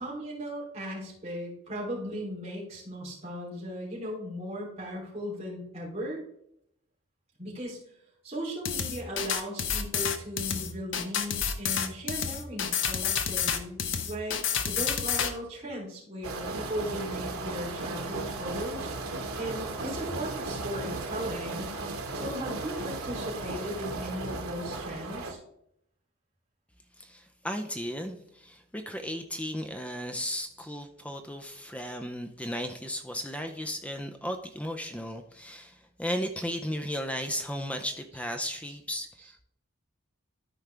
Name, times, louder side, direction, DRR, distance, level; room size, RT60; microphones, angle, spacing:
voice 1, 0.0-6.2 7.4-7.8 8.2-21.7 22.1-25.4, equal, 30° right, -5 dB, 3.2 m, -37 dB
sound 1, 8.7-15.3, left 7 dB, 60° left, 0.8 m, -29 dB
sound 2, 16.2-25.3, right 3 dB, 85° right, 1.3 m, -35 dB
voice 2, 27.0-39.4, equal, 5° left, 6 dB, 0.5 m, -35 dB
13.0 x 4.7 x 3.3 m, 0.74 s
head